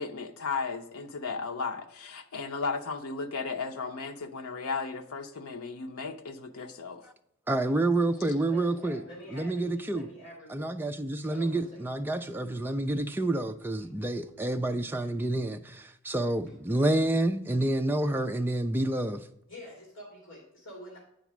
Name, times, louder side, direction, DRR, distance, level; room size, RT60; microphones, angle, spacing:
voice 1, 0.0-7.0, left 4 dB, 80° left, 0.8 m, -35 dB
voice 2, 7.5-9.0 9.3-10.1 10.5-19.3, right 2 dB, 10° right, 0.3 m, -28 dB
voice 3, 8.2-10.7 11.3-11.8 12.6-13.2 13.9-14.0 14.3-15.1 19.5-21.0, equal, 55° left, 2.5 m, -48 dB
9.2 x 4.1 x 6.0 m
head